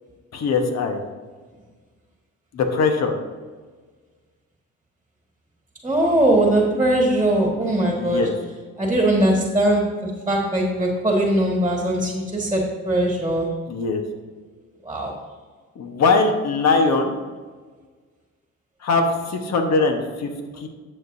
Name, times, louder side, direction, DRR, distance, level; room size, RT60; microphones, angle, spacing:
voice 1, 0.3-1.0 2.5-3.1 8.0-8.3 13.7-14.0 15.8-17.1 18.8-20.3 20.6-20.7, left 4 dB, 60° left, 4 dB, 1.3 m, -21 dB
voice 2, 5.8-8.3 8.8-13.5 14.9-15.1, right 1 dB, 10° right, -1 dB, 1.8 m, -20 dB
11.0 x 7.6 x 2.7 m, 1.4 s
cardioid pair, 90°, 30 cm